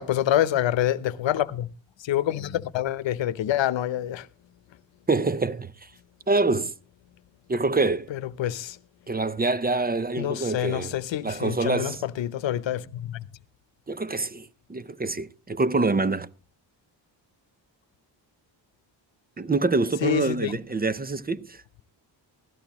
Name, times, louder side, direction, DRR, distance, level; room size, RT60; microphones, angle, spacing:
voice 1, 0.0-1.7 2.0-4.3 8.4-8.8 10.2-13.2 20.0-20.5, left 12 dB, 85° left, 0.9 m, -26 dB
voice 2, 5.1-5.9 6.3-6.7 7.5-8.1 9.1-11.0 11.2-12.0 13.9-16.3 19.4-21.6, right 3 dB, 20° right, 0.6 m, -26 dB
16.5 x 14.0 x 3.0 m
wide cardioid pair, 115°, 44 cm